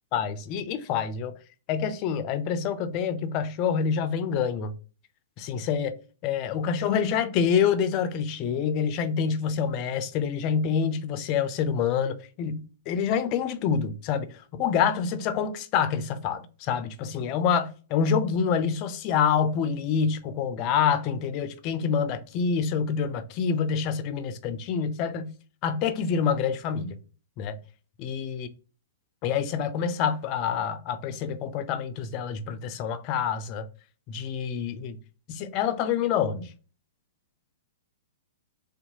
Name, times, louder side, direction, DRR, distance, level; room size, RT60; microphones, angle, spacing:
voice 1, 0.1-1.3 1.7-4.7 5.4-6.0 6.2-25.3 25.6-27.0 27.4-27.6 28.0-28.5 29.2-33.7 34.1-35.0 35.3-36.5, left 7 dB, 40° left, 0.4 m, -27 dB
2.7 x 2.2 x 2.8 m
hypercardioid pair, 120°, 0 cm